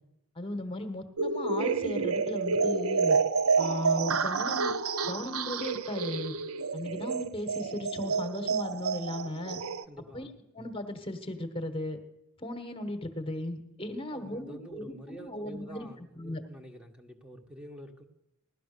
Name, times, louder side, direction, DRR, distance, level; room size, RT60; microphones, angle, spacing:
voice 1, 0.3-3.2 3.6-4.7 5.0-6.3 6.7-9.6 10.1-10.3 10.5-12.0 12.4-15.9 16.1-16.4, left 1 dB, 25° left, 8 dB, 1.4 m, -36 dB
sound 1, 1.2-9.8, right 4 dB, 90° right, 0.7 m, -29 dB
voice 2, 9.9-10.3 13.9-18.0, equal, 5° right, 3 dB, 1.3 m, -47 dB
16.5 x 12.0 x 6.8 m, 0.85 s
head